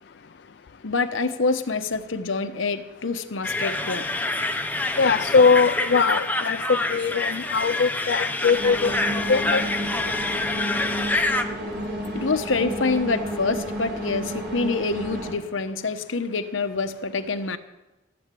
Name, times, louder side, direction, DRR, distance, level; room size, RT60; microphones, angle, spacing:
voice 1, 0.8-4.0 12.1-17.6, left 3 dB, 90° left, 9 dB, 1.0 m, -26 dB
sound 1, 3.4-11.4, left 2 dB, 10° left, 0.7 m, -27 dB
voice 2, 5.0-9.0 9.3-9.6, left 5 dB, 60° left, 8 dB, 0.4 m, -21 dB
sound 2, 8.5-15.3, equal, 60° right, 4.2 m, -31 dB
15.0 x 7.9 x 9.2 m, 1.0 s
head